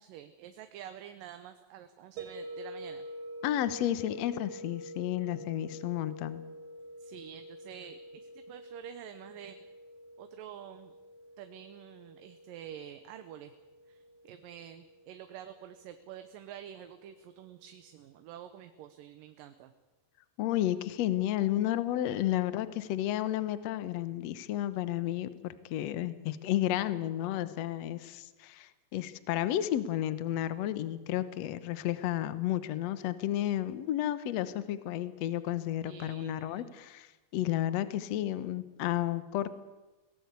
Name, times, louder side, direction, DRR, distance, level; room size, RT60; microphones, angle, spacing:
voice 1, 0.0-3.1 7.0-9.6 10.2-11.0 11.4-13.5 13.9-19.7 35.8-36.7, right 10 dB, 75° right, 9 dB, 2.6 m, -48 dB
sound 1, 2.2-17.1, equal, 55° right, 3.8 m, -48 dB
voice 2, 3.4-6.4 20.4-39.6, left 13 dB, 65° left, 13 dB, 1.8 m, -32 dB
23.5 x 18.0 x 8.2 m, 1.1 s
omnidirectional pair, 4.1 m